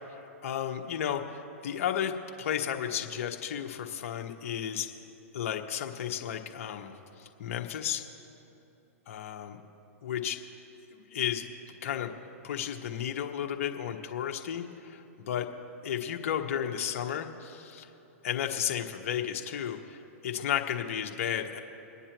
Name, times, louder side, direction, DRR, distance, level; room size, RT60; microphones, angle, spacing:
voice 1, 0.4-2.1 2.4-4.9 5.3-8.0 9.1-9.6 10.0-10.4 11.1-11.4 11.8-12.1 12.4-15.5 15.8-17.9 18.2-21.6, left 9 dB, 60° left, 4 dB, 1.3 m, -33 dB
27.0 x 9.8 x 3.0 m, 3.0 s
hypercardioid pair, 120°, 8 cm